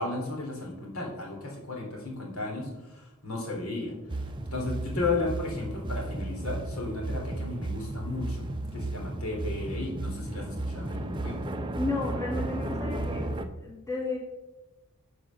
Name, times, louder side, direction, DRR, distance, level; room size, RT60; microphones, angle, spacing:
voice 1, 0.0-3.9 4.5-11.4, left 2 dB, 70° left, -1 dB, 3.0 m, -34 dB
sound 1, 4.1-13.4, right 2 dB, 20° right, 0.6 m, -34 dB
voice 2, 11.8-13.2 13.6-14.2, left 3 dB, 15° left, -2 dB, 1.6 m, -32 dB
11.0 x 5.0 x 6.3 m, 1.0 s
head